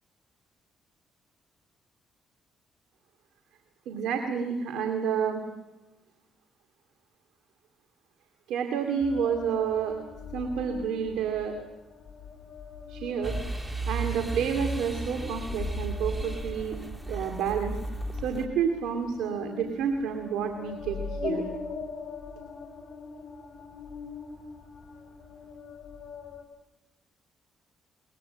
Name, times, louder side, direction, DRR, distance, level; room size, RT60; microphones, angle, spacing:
voice 1, 3.9-5.4 8.5-9.9 10.3-11.6 12.9-13.3 13.9-16.8 17.1-17.7 18.2-21.4, right 7 dB, 90° right, 4 dB, 2.2 m, -29 dB
sound 1, 9.0-26.4, left 4 dB, 45° left, 7.2 m, -41 dB
sound 2, 13.2-18.5, right 3 dB, 15° right, 1.5 m, -34 dB
22.5 x 20.5 x 7.7 m, 1.1 s
cardioid pair, 90°, 0 cm